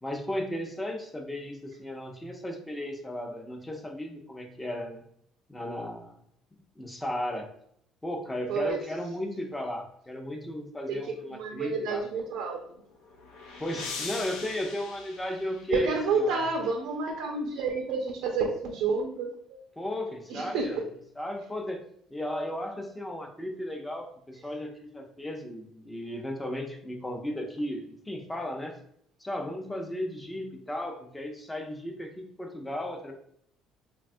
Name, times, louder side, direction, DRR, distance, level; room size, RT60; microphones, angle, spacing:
voice 1, 0.0-5.0 5.5-6.2 6.5-7.5 8.0-12.0 13.6-16.4 19.8-20.8 21.2-21.8 22.1-28.8 29.2-33.1, left 1 dB, 10° left, 4 dB, 0.4 m, -35 dB
voice 2, 8.5-8.8 10.9-11.0 11.3-12.6 15.7-19.6 20.3-20.8, right 4 dB, 80° right, 1 dB, 0.4 m, -29 dB
sound 1, 12.7-16.1, left 4 dB, 85° left, 0.5 m, -41 dB
3.3 x 2.2 x 2.5 m, 0.67 s
cardioid pair, 130°, 0 cm